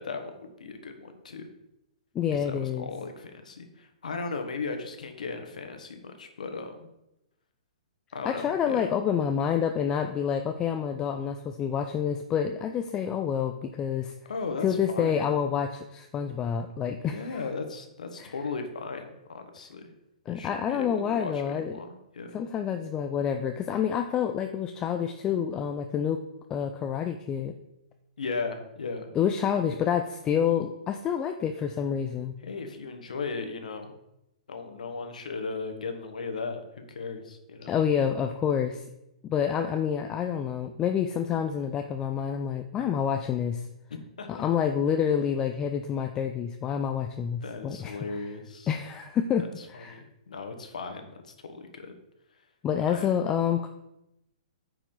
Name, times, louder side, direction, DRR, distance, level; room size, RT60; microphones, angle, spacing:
voice 1, 0.0-1.5 2.3-6.9 8.1-8.9 14.3-15.3 17.0-19.9 20.3-22.4 28.2-29.1 32.4-33.9 34.5-37.8 43.9-44.4 47.4-48.7 49.4-51.1 51.4-51.9 52.9-53.1, left 4 dB, 90° left, 6 dB, 1.3 m, -37 dB
voice 2, 2.1-2.9 8.2-14.1 14.6-17.4 18.2-18.3 20.3-21.8 22.3-26.2 26.5-27.5 29.2-32.3 37.7-38.8 39.3-43.6 44.3-48.0 48.7-50.0 52.6-53.7, left 8 dB, 15° left, 6 dB, 0.4 m, -28 dB
9.1 x 4.8 x 3.8 m, 0.87 s
hypercardioid pair, 150°, 4 cm